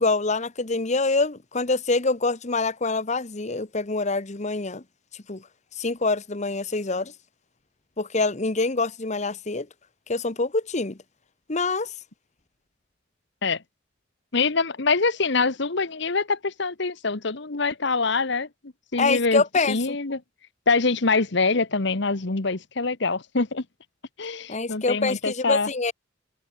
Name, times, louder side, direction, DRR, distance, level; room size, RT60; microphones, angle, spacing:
voice 1, 0.0-4.8 5.3-5.4 5.7-7.1 8.0-9.7 10.1-11.0 11.5-11.9 19.0-20.0 24.5-25.9, left 3 dB, 35° left, 1.1 m, -25 dB
voice 2, 14.3-19.4 19.7-20.2 20.7-23.6 24.2-25.7, left 4 dB, 60° left, 1.3 m, -24 dB
head